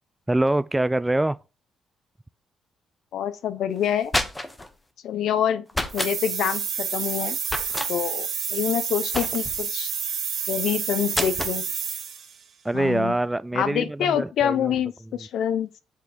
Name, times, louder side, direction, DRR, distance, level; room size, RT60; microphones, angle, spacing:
voice 1, 0.3-1.4 12.6-14.7, right 1 dB, 10° right, 0.3 m, -24 dB
voice 2, 3.1-4.1 5.0-5.6 5.9-7.4 7.9-9.9 10.5-11.6 12.7-13.2 13.5-15.7, left 9 dB, 75° left, 0.8 m, -26 dB
sound 1, 3.8-4.7 5.7-6.2 7.5-7.9 9.1-9.7 11.1-11.6, left 1 dB, 15° left, 1.1 m, -28 dB
sound 2, 5.9-12.3, right 7 dB, 60° right, 1.7 m, -29 dB
7.6 x 3.4 x 6.3 m
cardioid pair, 90°, 0 cm